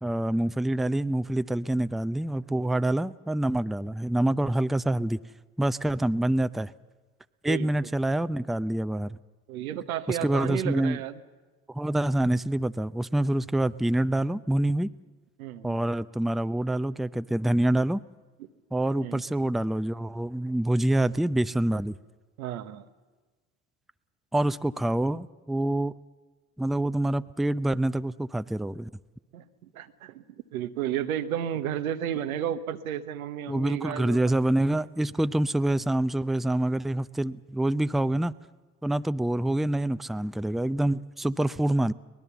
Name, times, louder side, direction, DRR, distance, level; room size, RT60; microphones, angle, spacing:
voice 1, 0.0-5.2 5.6-6.7 7.4-9.2 10.1-11.0 11.7-14.9 15.6-18.0 18.7-22.0 24.3-25.9 26.6-28.9 33.5-38.3 38.8-41.9, right 1 dB, ahead, 14 dB, 0.6 m, -26 dB
voice 2, 7.5-7.9 9.5-11.2 15.4-15.8 19.0-19.2 22.4-22.8 29.3-29.4 29.7-30.2 30.5-34.4, right 10 dB, 90° right, 9 dB, 1.1 m, -32 dB
24.0 x 19.5 x 7.0 m, 1.3 s
hypercardioid pair, 55°, 41 cm